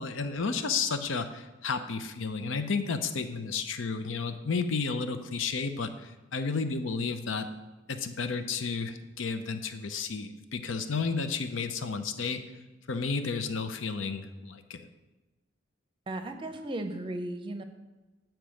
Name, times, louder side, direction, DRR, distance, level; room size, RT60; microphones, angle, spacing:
voice 1, 0.0-7.5 7.9-12.4 12.9-14.9, left 4 dB, 75° left, 9 dB, 0.6 m, -32 dB
voice 2, 16.1-17.6, right 1 dB, 25° right, 7 dB, 0.6 m, -35 dB
8.7 x 4.5 x 6.3 m, 1.1 s
head